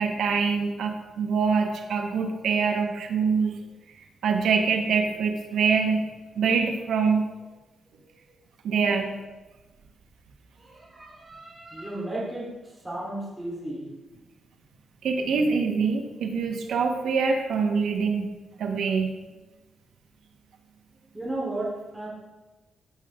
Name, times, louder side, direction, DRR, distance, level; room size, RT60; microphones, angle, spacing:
voice 1, 0.0-3.6 4.2-6.1 6.3-7.3 8.6-9.1 15.0-18.3 18.6-19.1, right 5 dB, 80° right, 4 dB, 1.2 m, -24 dB
voice 2, 7.9-8.4 10.6-13.9 21.1-22.1, right 1 dB, 15° right, -6 dB, 3.7 m, -35 dB
15.5 x 6.3 x 3.7 m, 1.1 s
cardioid pair, 95°, 0 cm